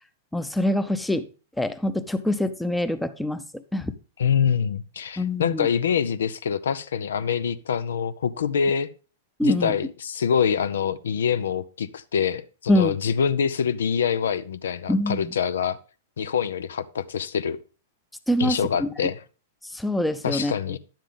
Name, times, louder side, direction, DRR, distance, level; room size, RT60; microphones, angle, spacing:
voice 1, 0.3-1.3 1.6-3.4 3.7-3.9 5.2-5.7 9.4-9.8 12.7-12.9 14.9-15.3 18.3-18.9 19.6-20.5, left 1 dB, 5° left, 10 dB, 0.7 m, -24 dB
voice 2, 4.2-8.9 9.4-15.8 16.2-17.6 18.4-19.2 20.2-20.8, left 7 dB, 80° left, 14 dB, 0.6 m, -25 dB
10.5 x 7.4 x 3.5 m, 0.34 s
hypercardioid pair, 120°, 0 cm